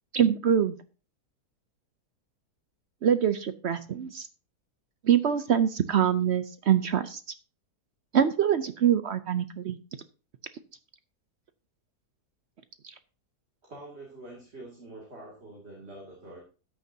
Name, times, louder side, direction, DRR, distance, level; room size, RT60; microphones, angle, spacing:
voice 1, 0.1-0.7 3.0-4.3 5.0-7.2 8.1-9.8, right 9 dB, 60° right, 12 dB, 0.7 m, -24 dB
voice 2, 13.6-16.4, right 2 dB, 40° right, -2 dB, 2.7 m, -45 dB
13.0 x 9.5 x 2.7 m, 0.34 s
omnidirectional pair, 1.7 m